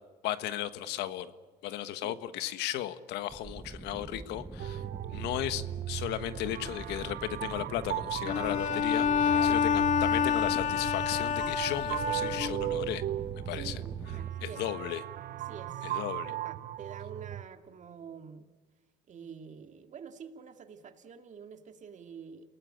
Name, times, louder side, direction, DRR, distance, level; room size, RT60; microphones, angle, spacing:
voice 1, 0.2-1.3 1.6-4.8 5.1-13.0 13.5-13.8 14.4-15.0 15.8-16.3, left 12 dB, 90° left, 12 dB, 1.4 m, -35 dB
sound 1, 3.3-14.3, right 3 dB, 15° right, 0.9 m, -45 dB
sound 2, 4.6-17.5, right 13 dB, 65° right, 0.8 m, -37 dB
Bowed string instrument, 8.3-12.9, left 7 dB, 50° left, 1.5 m, -28 dB
voice 2, 9.3-9.7 13.5-14.6 15.3-15.9 16.3-18.5 19.1-22.5, right 7 dB, 45° right, 7 dB, 2.4 m, -47 dB
29.0 x 18.5 x 9.0 m, 1.4 s
cardioid pair, 110°, 17 cm